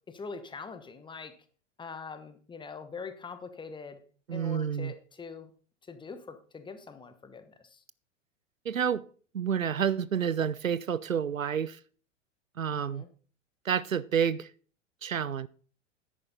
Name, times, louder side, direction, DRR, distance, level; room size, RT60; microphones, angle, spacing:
voice 1, 0.1-1.3 1.8-4.0 4.3-5.5 5.9-7.8 12.7-13.1, left 5 dB, 10° left, 1.1 m, -43 dB
voice 2, 4.3-4.9 8.7-9.0 9.3-11.8 12.6-13.0 13.7-14.5 15.0-15.5, right 8 dB, 85° right, 0.5 m, -29 dB
10.5 x 8.6 x 4.2 m
figure-of-eight pair, 90°, 39 cm